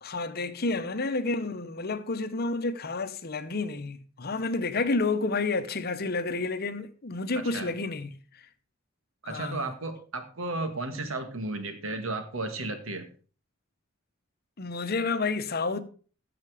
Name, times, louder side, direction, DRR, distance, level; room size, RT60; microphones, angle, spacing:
voice 1, 0.0-8.2 9.2-9.7 14.6-15.8, left 3 dB, 50° left, 0.9 m, -30 dB
voice 2, 7.3-7.8 9.2-13.1, right 2 dB, 90° right, 2.0 m, -34 dB
15.5 x 6.0 x 5.0 m
head